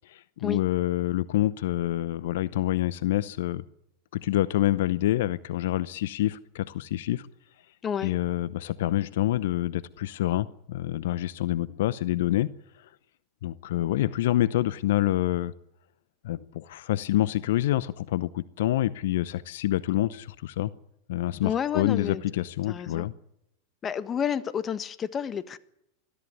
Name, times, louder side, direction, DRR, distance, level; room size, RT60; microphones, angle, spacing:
voice 1, 0.0-3.6 4.1-7.3 8.0-12.5 12.8-12.9 13.4-15.5 16.2-20.7 21.1-23.1, left 14 dB, 70° left, 0.8 m, -27 dB
voice 2, 21.4-22.2 22.7-23.0 23.8-25.6, left 8 dB, 30° left, 1.4 m, -30 dB
21.0 x 14.0 x 9.7 m
hypercardioid pair, 100°, 0 cm